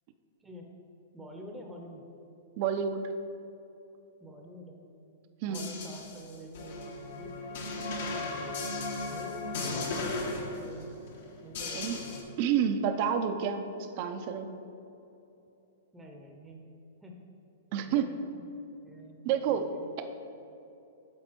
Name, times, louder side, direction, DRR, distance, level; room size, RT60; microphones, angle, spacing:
voice 1, 0.4-0.7 1.1-2.1 4.2-4.8 5.4-7.3 8.0-8.6 9.1-10.9 11.4-11.9 15.9-16.7 17.0-17.3 17.8-18.4 18.8-19.2 19.4-19.8, equal, 10° right, 1 dB, 0.7 m, -47 dB
voice 2, 2.6-3.0 5.4-5.7 11.8-12.0 12.4-13.6 14.0-14.5 17.7-18.0 19.2-19.6, right 8 dB, 50° right, 8 dB, 0.5 m, -28 dB
sound 1, 5.5-12.2, left 3 dB, 65° left, 1.1 m, -36 dB
7.7 x 4.1 x 4.5 m, 2.8 s
hypercardioid pair, 130°, 0 cm